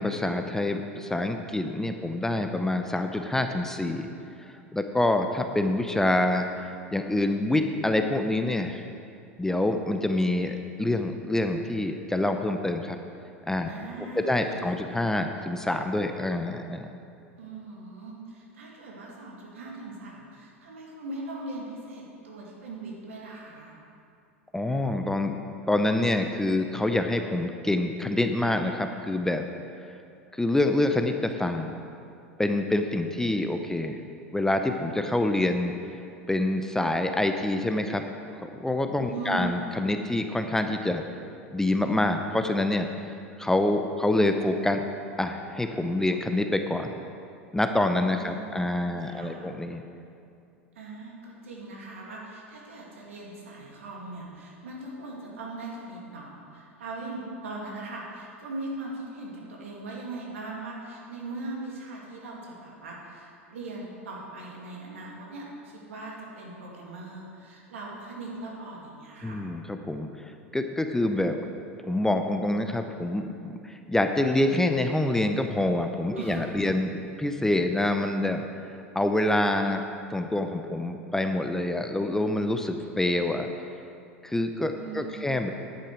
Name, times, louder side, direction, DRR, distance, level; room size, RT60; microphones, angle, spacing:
voice 1, 0.0-4.1 4.4-6.5 6.9-8.8 9.4-13.0 13.5-13.7 14.2-16.9 24.5-25.4 25.7-29.4 30.3-31.7 32.4-34.0 34.3-35.7 36.3-38.1 38.4-41.0 41.5-42.9 43.4-44.8 45.2-46.9 47.5-49.8 69.2-70.1 70.5-71.4 71.8-78.4 78.9-79.8 80.1-83.5 84.2-85.5, left 1 dB, 5° left, 6 dB, 0.7 m, -26 dB
voice 2, 13.6-15.0 17.4-23.8 39.1-39.5 48.2-49.5 50.8-69.4 76.2-76.4 84.7-85.3, right 2 dB, 75° right, -2 dB, 2.4 m, -40 dB
10.5 x 8.7 x 4.9 m, 2.5 s
figure-of-eight pair, 85°, 7 cm